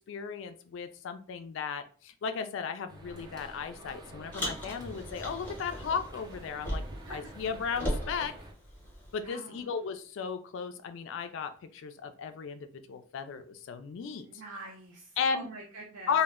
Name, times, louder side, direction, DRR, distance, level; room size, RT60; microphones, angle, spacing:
voice 1, 0.1-6.8 7.1-8.3 9.1-14.3 15.2-15.5 16.1-16.2, left 6 dB, 65° left, 9 dB, 0.3 m, -35 dB
sound 1, 2.9-8.5, right 1 dB, 20° right, 0.4 m, -48 dB
Car, 4.3-7.1 7.4-9.2, equal, 10° left, 0.7 m, -37 dB
voice 2, 9.2-9.8 14.2-16.2, right 2 dB, 80° right, -3 dB, 0.5 m, -46 dB
2.1 x 2.1 x 3.5 m, 0.41 s
head